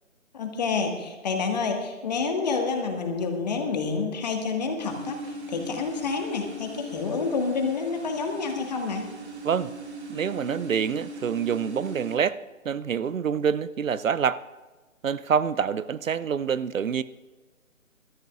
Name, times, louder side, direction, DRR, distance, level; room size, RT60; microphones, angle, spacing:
voice 1, 0.3-9.1, left 4 dB, 30° left, 1.7 m, -28 dB
sound 1, 4.8-12.2, equal, 50° right, 2.2 m, -39 dB
voice 2, 10.1-12.4 12.6-14.4 15.0-17.0, right 7 dB, 70° right, 0.6 m, -26 dB
23.0 x 14.0 x 2.5 m
figure-of-eight pair, 160°, 41 cm